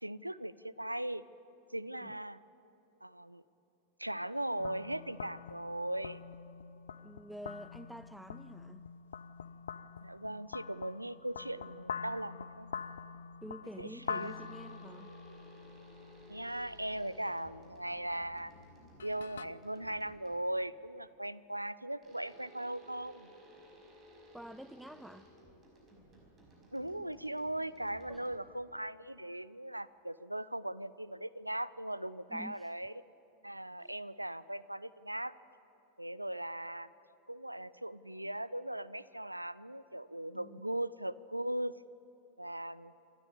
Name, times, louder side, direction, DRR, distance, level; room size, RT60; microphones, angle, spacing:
voice 1, 0.0-1.2 1.7-2.4 3.0-3.4 4.0-6.2 10.0-12.7 13.8-14.3 16.3-18.5 19.0-23.3 26.7-32.9 33.4-35.3 36.0-36.9 37.3-41.7 42.4-42.9, right 1 dB, 85° right, 18 dB, 0.5 m, -39 dB
sound 1, 4.6-19.5, left 7 dB, 65° left, 0.5 m, -46 dB
voice 2, 7.0-8.9 13.4-15.1 24.3-25.3 28.1-28.2 32.3-32.7 33.8-34.0 40.3-40.6, equal, ahead, 14 dB, 0.4 m, -48 dB
sound 2, 14.0-20.6 22.0-28.7, right 1 dB, 25° right, 5.2 m, -58 dB
27.0 x 13.5 x 8.7 m, 3.0 s
figure-of-eight pair, 90°, 0 cm